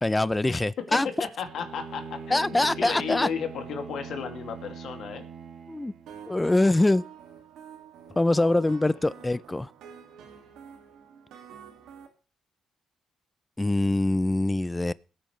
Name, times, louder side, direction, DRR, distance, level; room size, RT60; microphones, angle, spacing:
voice 1, 0.0-1.1 2.3-3.3 5.7-5.9 6.3-7.0 8.2-9.7 13.6-14.9, left 2 dB, 15° left, 0.5 m, -24 dB
voice 2, 0.9-5.2 8.1-8.8 9.3-9.4, left 7 dB, 70° left, 2.4 m, -34 dB
Bowed string instrument, 1.4-6.3, right 5 dB, 65° right, 2.0 m, -42 dB
sound 1, 6.1-12.1, right 8 dB, 80° right, 2.3 m, -48 dB
22.0 x 8.7 x 3.3 m
cardioid pair, 90°, 0 cm